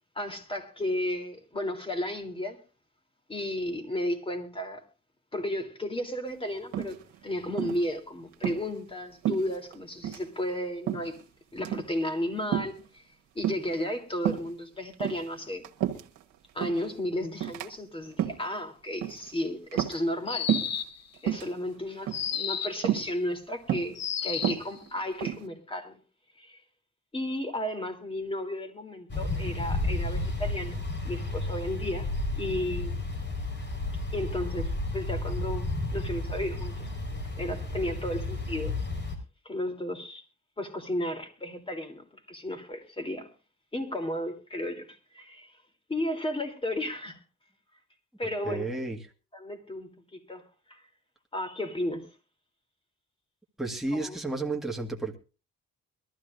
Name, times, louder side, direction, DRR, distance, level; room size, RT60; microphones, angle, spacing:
voice 1, 0.1-2.6 3.3-4.8 5.3-11.2 11.5-13.0 13.3-15.6 16.5-20.5 21.2-26.0 26.4-26.6 27.1-32.1 32.4-33.0 34.1-36.9 37.4-38.7 39.4-40.2 40.6-43.3 43.7-44.9 45.1-45.5 45.9-47.2 48.2-48.7 49.3-50.8 51.3-52.1 53.9-54.2, left 1 dB, 20° left, 3.4 m, -33 dB
sound 1, 6.7-7.2 7.6-7.9 8.3-8.6 9.2-9.8 10.0-10.3 10.9-11.2 11.6-11.9 12.5-12.8 13.4-13.8 14.2-14.5 14.9-16.2 16.6-16.9 17.4-17.7 18.1-18.5 19.0-19.3 19.7-20.2 20.5-20.8 21.2-21.5 22.1-22.4 22.8-23.1 23.7-24.0 24.3-25.5, right 11 dB, 85° right, 1.4 m, -30 dB
sound 2, 20.3-21.1 22.1-22.9 24.0-24.7, left 8 dB, 60° left, 1.2 m, -32 dB
sound 3, 29.1-39.2, left 2 dB, 35° left, 4.8 m, -32 dB
voice 2, 48.5-49.0 53.6-55.2, right 2 dB, ahead, 1.9 m, -32 dB
22.5 x 13.5 x 2.6 m
cardioid pair, 90°, 30 cm